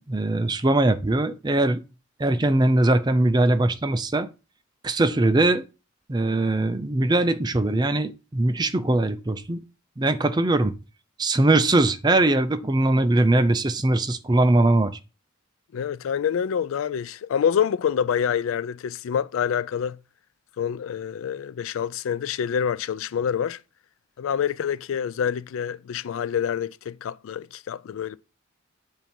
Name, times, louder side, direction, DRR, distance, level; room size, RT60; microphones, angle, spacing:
voice 1, 0.0-1.8 2.2-4.3 4.8-5.6 6.1-9.6 10.0-10.7 11.2-15.0, right 2 dB, 20° right, 0.5 m, -21 dB
voice 2, 15.7-20.0 20.6-23.6 24.2-28.2, left 8 dB, 80° left, 0.3 m, -26 dB
7.4 x 2.7 x 5.1 m
head